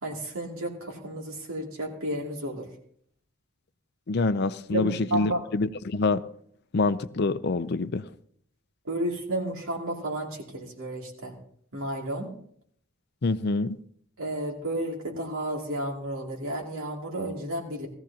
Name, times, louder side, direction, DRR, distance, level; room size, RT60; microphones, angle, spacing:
voice 1, 0.0-2.7 4.7-5.4 8.8-11.3 11.7-12.3 14.2-17.9, right 1 dB, 85° right, 2.6 m, -32 dB
voice 2, 4.1-6.2 6.7-8.1 13.2-13.8, left 3 dB, 55° left, 0.5 m, -26 dB
17.5 x 14.5 x 2.8 m
head